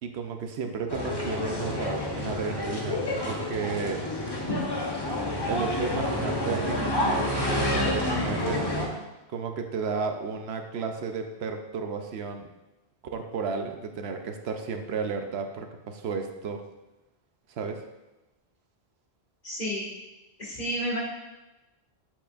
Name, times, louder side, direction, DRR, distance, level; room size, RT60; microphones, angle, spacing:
voice 1, 0.0-4.0 5.5-8.7 9.3-12.5 13.1-16.6 17.5-17.8, right 5 dB, 80° right, 5 dB, 0.9 m, -33 dB
sound 1, 0.9-8.9, left 1 dB, 25° left, 0.9 m, -29 dB
voice 2, 19.4-19.9 20.4-21.0, equal, 45° left, -4 dB, 1.9 m, -30 dB
7.7 x 6.8 x 2.5 m, 1.0 s
omnidirectional pair, 1.1 m